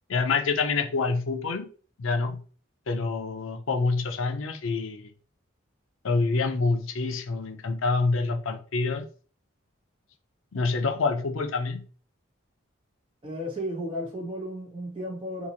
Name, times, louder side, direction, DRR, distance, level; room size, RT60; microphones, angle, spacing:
voice 1, 0.1-1.7 2.0-2.4 2.9-5.1 6.0-9.0 10.5-11.9, left 4 dB, 80° left, 0.6 m, -27 dB
voice 2, 13.2-15.5, equal, 25° right, 1.1 m, -34 dB
2.9 x 2.5 x 3.9 m
head